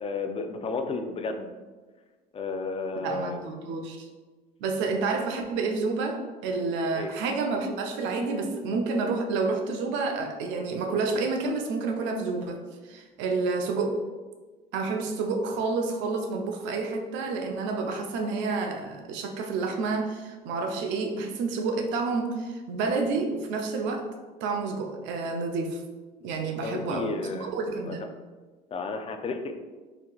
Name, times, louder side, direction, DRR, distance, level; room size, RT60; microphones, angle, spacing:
voice 1, 0.0-1.5 2.3-3.4 6.9-7.1 26.6-27.5 27.9-28.0 28.7-29.5, left 4 dB, 30° left, 6 dB, 0.4 m, -32 dB
voice 2, 3.0-4.1 4.6-14.0 14.7-24.1 24.4-25.8 26.2-28.1, right 3 dB, 70° right, 4 dB, 0.5 m, -29 dB
3.6 x 2.8 x 2.3 m, 1.3 s
supercardioid pair, 80°, 19 cm